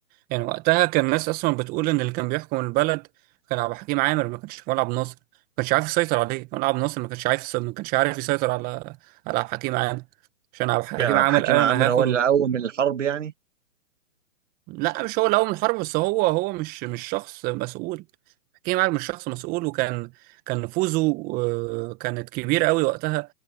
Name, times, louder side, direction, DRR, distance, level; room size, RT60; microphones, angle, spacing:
voice 1, 0.3-3.1 3.5-5.1 5.6-9.0 9.3-10.0 10.5-12.2 14.7-18.0 18.6-20.1 20.5-23.3, right 22 dB, 25° right, 1.3 m, -25 dB
voice 2, 11.0-13.3, right 8 dB, 70° right, 2.1 m, -23 dB
hypercardioid pair, 135°, 38 cm